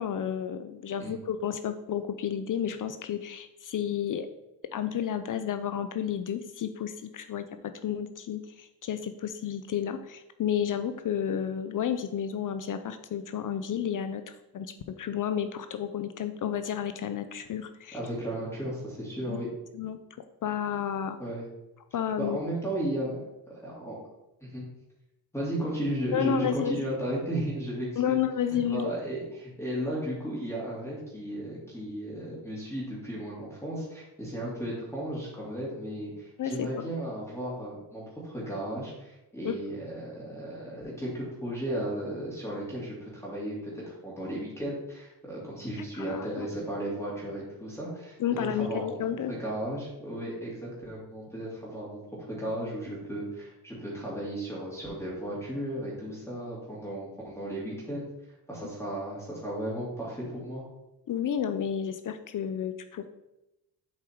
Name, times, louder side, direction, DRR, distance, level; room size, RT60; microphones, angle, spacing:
voice 1, 0.0-4.3 4.7-7.5 7.8-14.2 14.5-18.0 19.3-19.4 19.7-20.0 20.4-21.2 21.9-22.4 26.1-26.8 28.0-28.9 36.4-36.9 39.4-39.6 46.0-46.5 48.2-49.3 61.1-63.1, left 8 dB, 50° left, 10 dB, 0.6 m, -31 dB
voice 2, 17.9-19.5 21.2-21.5 22.2-23.2 23.6-24.0 24.4-24.6 25.3-28.2 28.6-49.0 49.3-58.0 58.5-60.6, right 1 dB, 5° left, -6 dB, 2.8 m, -35 dB
7.5 x 4.7 x 4.6 m, 0.93 s
cardioid pair, 115°, 42 cm